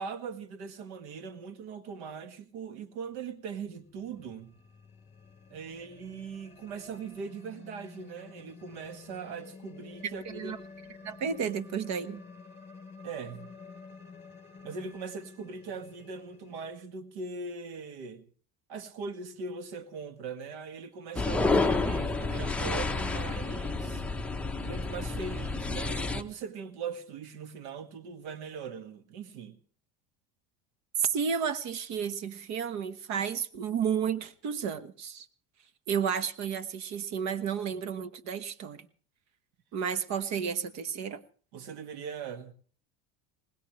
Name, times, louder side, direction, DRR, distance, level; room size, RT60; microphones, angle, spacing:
voice 1, 0.0-4.5 5.5-10.5 13.0-13.5 14.6-18.3 18.7-24.0 24.6-29.6 41.5-42.5, right 5 dB, 85° right, 1.9 m, -40 dB
sound 1, 3.6-16.7, left 4 dB, 20° left, 4.0 m, -50 dB
voice 2, 10.2-10.6 11.0-12.2 31.0-35.3 35.9-38.8 39.7-41.2, right 7 dB, 55° right, 1.3 m, -32 dB
sound 2, 21.2-26.2, left 3 dB, 5° left, 0.8 m, -30 dB
21.0 x 19.5 x 3.2 m
supercardioid pair, 125°, 34 cm